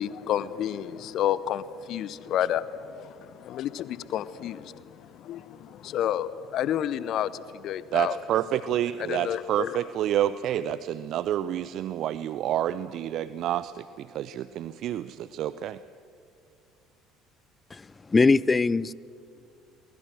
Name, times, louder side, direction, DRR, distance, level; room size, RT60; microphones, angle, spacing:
voice 1, 0.0-8.2 9.1-9.8, left 11 dB, 55° left, 0.8 m, -30 dB
voice 2, 7.9-15.8, right 11 dB, 55° right, 0.5 m, -29 dB
voice 3, 17.7-18.9, left 3 dB, 25° left, 0.5 m, -22 dB
23.0 x 20.0 x 7.7 m
figure-of-eight pair, 60°, 0 cm